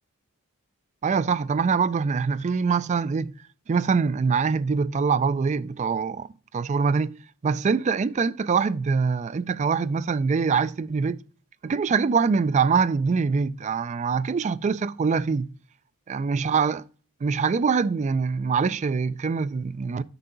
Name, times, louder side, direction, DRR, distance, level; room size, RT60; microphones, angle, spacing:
voice 1, 1.0-3.3 3.7-6.3 6.5-7.1 7.4-11.2 11.6-15.5 16.1-16.8 17.2-20.0, right 5 dB, 30° right, 0.3 m, -24 dB
8.0 x 5.6 x 3.8 m
head